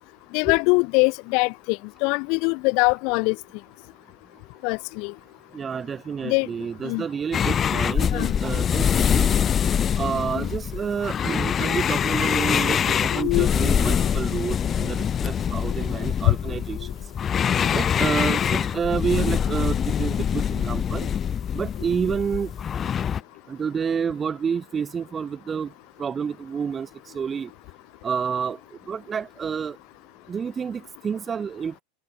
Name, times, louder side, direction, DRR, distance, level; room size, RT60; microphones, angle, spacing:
voice 1, 0.3-3.4 4.6-5.1 6.2-6.5 6.8-7.0 8.1-8.3 10.3-10.4 12.9-13.5 16.3-16.4, left 32 dB, 45° left, 2.2 m, -22 dB
voice 2, 5.5-9.3 10.0-16.9 17.7-21.1 21.5-22.5 23.5-25.7 26.0-26.9 27.1-27.5 28.0-28.6 28.9-29.8 30.3-31.8, right 6 dB, 20° right, 4.8 m, -29 dB
sound 1, 7.3-23.2, left 8 dB, 25° left, 0.4 m, -24 dB
figure-of-eight pair, 85°, 0 cm